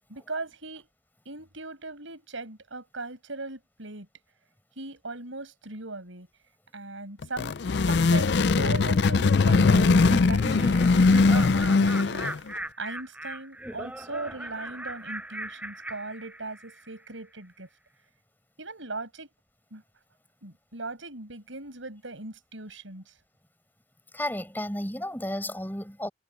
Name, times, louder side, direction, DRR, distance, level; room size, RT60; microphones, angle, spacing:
voice 1, 0.1-0.9 1.2-4.1 4.8-6.3 6.7-12.5 12.8-17.7 18.6-19.3 19.7-19.8 20.4-23.1, right 3 dB, 90° right, 6.3 m, -39 dB
sound 1, 7.2-12.5, left 4 dB, 60° left, 0.4 m, -21 dB
Laughter, 9.3-16.8, right 1 dB, 5° right, 7.1 m, -37 dB
voice 2, 24.1-26.1, left 1 dB, 10° left, 5.7 m, -32 dB
head